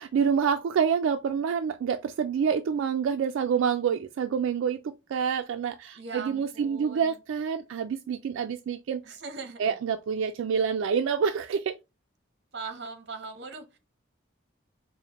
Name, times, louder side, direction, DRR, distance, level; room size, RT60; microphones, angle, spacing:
voice 1, 0.0-9.0 9.6-11.8, right 7 dB, 85° right, 0.3 m, -27 dB
voice 2, 5.9-7.2 9.0-9.7 12.5-13.8, right 4 dB, 55° right, 0.7 m, -40 dB
4.9 x 2.1 x 2.9 m
head